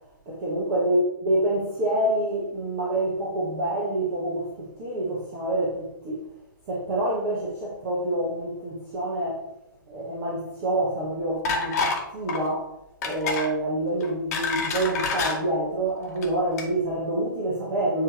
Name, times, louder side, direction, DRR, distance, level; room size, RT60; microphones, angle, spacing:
voice 1, 0.3-6.2 6.7-9.4 9.9-12.7 13.0-18.0, right 1 dB, 35° right, 1.5 m, -27 dB
sound 1, 11.4-12.0 12.3-12.5 13.0-13.5 14.0-15.3 16.1-16.3 16.6-16.7, left 4 dB, 45° left, 1.4 m, -27 dB
9.5 x 3.2 x 3.1 m
figure-of-eight pair, 115°, 12 cm